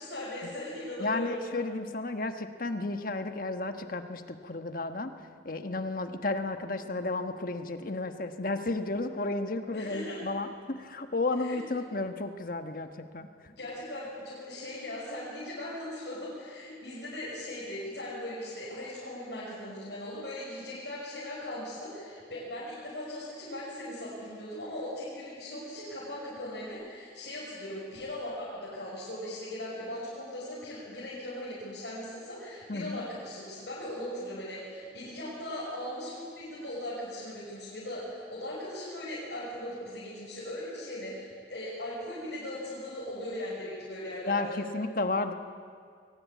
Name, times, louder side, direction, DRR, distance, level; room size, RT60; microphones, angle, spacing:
voice 1, 0.0-1.4 9.7-10.2 11.4-11.6 13.6-44.6, left 1 dB, 80° left, -7 dB, 6.1 m, -39 dB
voice 2, 1.0-5.1 5.4-13.3 32.7-33.0 44.2-45.3, left 2 dB, 55° left, 7 dB, 1.4 m, -33 dB
22.5 x 19.5 x 8.5 m, 2.1 s
head